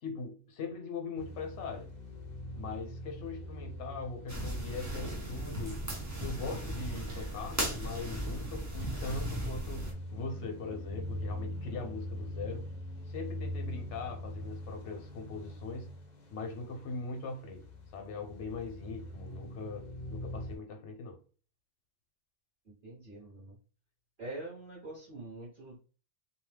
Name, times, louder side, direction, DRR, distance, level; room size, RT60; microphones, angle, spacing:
voice 1, 0.0-1.9 2.5-5.8 6.2-12.7 13.1-15.9 16.3-17.7 17.9-21.2, left 4 dB, 70° left, 1.0 m, -41 dB
sound 1, 1.2-20.6, equal, 45° left, 0.7 m, -43 dB
sound 2, 4.3-9.9, right 1 dB, 20° right, 0.6 m, -37 dB
voice 2, 22.6-23.5 24.2-25.8, right 2 dB, 45° right, 1.3 m, -44 dB
2.7 x 2.0 x 3.3 m
omnidirectional pair, 1.3 m